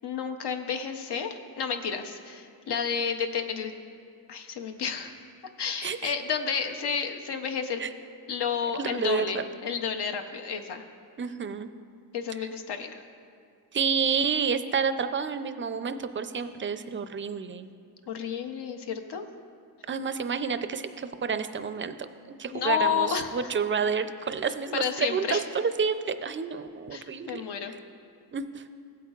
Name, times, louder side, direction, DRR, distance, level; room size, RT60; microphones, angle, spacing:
voice 1, 0.0-3.7 4.3-5.2 5.6-7.8 8.3-10.9 12.1-13.0 18.1-19.3 22.5-23.5 24.7-25.4 26.9-27.7, left 7 dB, 75° left, 6 dB, 0.7 m, -31 dB
voice 2, 5.8-6.1 7.8-7.9 8.8-9.4 11.2-11.7 13.7-17.7 19.9-22.1 22.4-27.5 28.3-28.7, right 6 dB, 30° right, 10 dB, 0.4 m, -29 dB
15.5 x 8.2 x 2.4 m, 2.3 s
wide cardioid pair, 90°, 41 cm